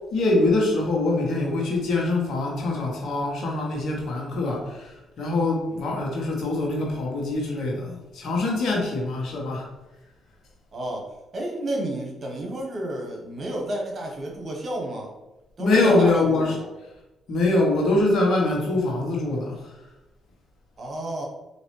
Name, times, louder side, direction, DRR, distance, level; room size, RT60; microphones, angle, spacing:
voice 1, 0.1-9.7 15.6-16.5 17.3-19.6, left 2 dB, 65° left, -1 dB, 1.2 m, -23 dB
voice 2, 10.7-15.1 15.6-16.7 20.8-21.3, right 1 dB, 50° right, 0 dB, 1.3 m, -31 dB
4.1 x 2.8 x 3.3 m, 1.0 s
supercardioid pair, 55°, 0 cm